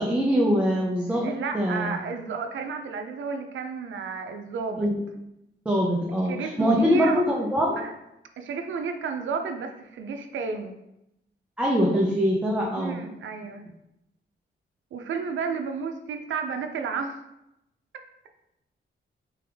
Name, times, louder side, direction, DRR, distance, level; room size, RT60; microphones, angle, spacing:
voice 1, 0.0-2.0 4.8-5.0 5.7-7.8 11.6-13.0, equal, 5° right, -4 dB, 0.5 m, -23 dB
voice 2, 1.1-4.9 6.1-7.2 7.7-7.9 8.4-10.7 12.7-13.6 14.9-17.2, right 5 dB, 85° right, 6 dB, 0.5 m, -32 dB
3.4 x 3.4 x 3.4 m, 0.87 s
wide cardioid pair, 140°, 19 cm